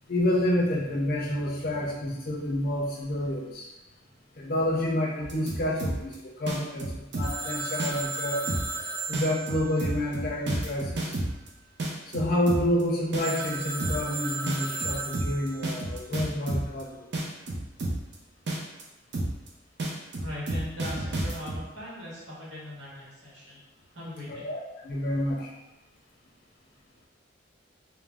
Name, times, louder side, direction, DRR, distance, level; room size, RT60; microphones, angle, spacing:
voice 1, 0.1-3.7 4.4-8.5 9.1-11.2 12.1-17.0 24.3-25.5, left 1 dB, 50° left, -3 dB, 0.5 m, -29 dB
sound 1, 5.2-6.1 6.5-7.5 7.8-8.2 8.5-8.8 9.1-11.5 11.8-12.8 13.1-13.5 13.8-14.1 14.5-16.8 17.1-18.1 18.5-18.8 19.1-19.5 19.8-21.6, right 1 dB, 55° right, 0.5 m, -30 dB
Telephone, 7.2-10.8 13.2-15.7, right 3 dB, 20° right, 0.9 m, -35 dB
voice 2, 20.2-23.6 23.9-24.5, left 1 dB, 75° right, -7 dB, 1.1 m, -39 dB
2.4 x 2.0 x 3.2 m, 1.0 s
head